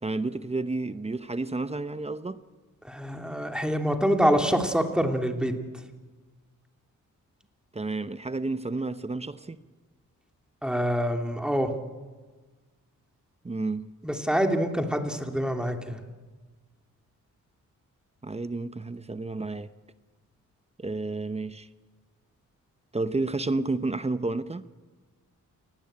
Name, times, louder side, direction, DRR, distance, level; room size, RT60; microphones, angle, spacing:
voice 1, 0.0-2.4 7.7-9.6 13.4-13.9 18.2-19.7 20.8-21.7 22.9-24.6, right 3 dB, 20° right, 0.9 m, -31 dB
voice 2, 2.8-5.5 10.6-11.7 14.0-16.0, equal, 5° right, 2.6 m, -26 dB
28.5 x 18.5 x 8.7 m
cardioid pair, 100°, 32 cm